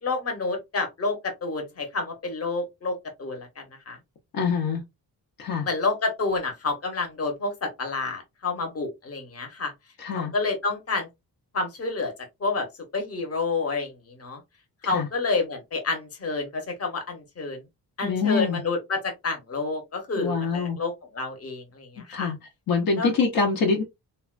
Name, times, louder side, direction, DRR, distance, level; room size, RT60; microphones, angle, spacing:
voice 1, 0.0-4.0 5.6-9.7 10.1-11.1 11.5-12.1 12.4-12.7 12.9-14.4 14.8-17.6 18.0-22.3 23.0-23.3, left 3 dB, 40° left, 1.0 m, -29 dB
voice 2, 4.3-4.8 5.4-5.7 10.0-10.3 14.8-15.1 18.0-18.6 20.2-20.8 22.1-22.4 22.7-23.8, left 5 dB, 65° left, 0.7 m, -25 dB
3.5 x 2.2 x 2.4 m
wide cardioid pair, 145°, 38 cm